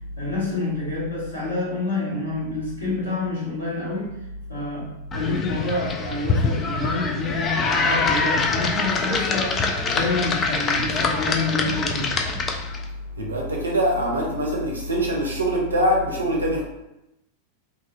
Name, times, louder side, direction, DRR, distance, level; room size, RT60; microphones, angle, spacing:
voice 1, 0.2-4.2 4.5-9.6 9.9-12.2, left 2 dB, 80° left, -9 dB, 1.4 m, -28 dB
sound 1, 5.1-12.8, left 4 dB, 25° left, 0.3 m, -24 dB
voice 2, 13.1-16.6, equal, 75° right, -1 dB, 0.6 m, -23 dB
2.9 x 2.5 x 2.3 m, 0.90 s
figure-of-eight pair, 90°, 0 cm